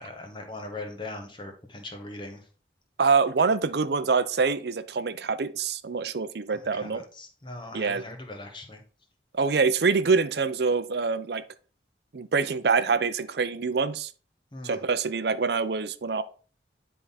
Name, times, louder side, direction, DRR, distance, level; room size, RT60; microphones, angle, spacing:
voice 1, 0.0-2.4 6.6-8.8 14.5-14.8, left 2 dB, 25° left, 4 dB, 1.3 m, -40 dB
voice 2, 3.0-7.0 7.7-8.0 9.3-11.4 12.1-14.1 14.6-16.2, right 4 dB, 65° right, 12 dB, 0.5 m, -25 dB
9.9 x 3.7 x 4.2 m, 0.39 s
head